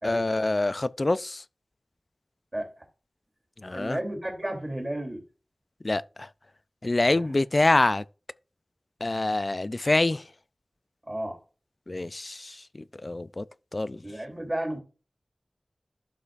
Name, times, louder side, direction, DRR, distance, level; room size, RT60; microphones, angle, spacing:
voice 1, 0.0-1.4 3.6-4.0 5.8-6.0 6.8-8.0 9.0-10.2 11.9-12.5 13.0-13.4 13.7-14.0, left 2 dB, 45° left, 0.4 m, -25 dB
voice 2, 3.7-5.2 7.0-7.4 11.1-11.4 14.0-14.8, right 1 dB, 25° right, 3.0 m, -33 dB
12.0 x 5.6 x 2.5 m
wide cardioid pair, 70°, 0 cm